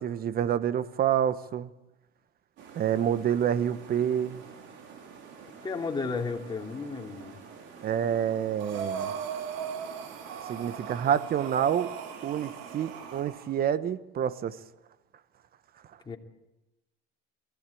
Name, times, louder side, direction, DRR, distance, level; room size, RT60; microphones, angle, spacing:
voice 1, 0.0-1.7 2.7-4.4 7.8-9.1 10.5-11.9 12.2-14.6, right 9 dB, 45° right, 1.1 m, -28 dB
sound 1, 2.6-13.2, right 6 dB, 65° right, 4.3 m, -48 dB
voice 2, 5.6-7.4 16.0-16.2, left 4 dB, 20° left, 2.9 m, -33 dB
Breathing, 8.6-13.5, right 7 dB, 80° right, 2.5 m, -38 dB
22.5 x 15.5 x 8.5 m
supercardioid pair, 90°, 21 cm